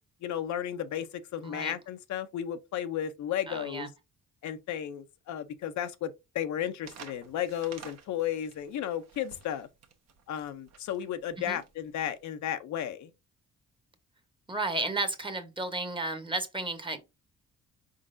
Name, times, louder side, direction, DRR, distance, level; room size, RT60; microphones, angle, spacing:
voice 1, 0.2-3.9 4.4-9.7 10.3-13.1, left 10 dB, 70° left, 0.6 m, -34 dB
voice 2, 1.4-1.7 3.5-3.9 11.4-11.6 14.5-17.0, right 2 dB, 15° right, 1.0 m, -33 dB
sound 1, 6.8-12.3, right 6 dB, 60° right, 1.0 m, -51 dB
4.6 x 3.8 x 2.5 m
cardioid pair, 90°, 30 cm